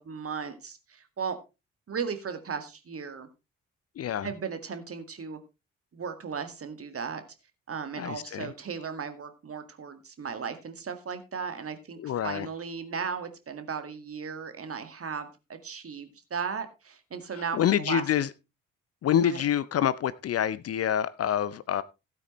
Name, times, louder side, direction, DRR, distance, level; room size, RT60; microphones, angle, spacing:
voice 1, 0.0-1.4 1.9-3.3 4.2-5.4 5.9-7.2 7.7-18.0 19.2-19.4, right 6 dB, 35° right, 9 dB, 1.9 m, -36 dB
voice 2, 4.0-4.3 8.0-8.5 12.0-12.5 17.5-18.3 19.0-21.8, left 10 dB, 40° left, 17 dB, 0.6 m, -27 dB
16.0 x 8.7 x 3.2 m, 0.27 s
figure-of-eight pair, 40°, 38 cm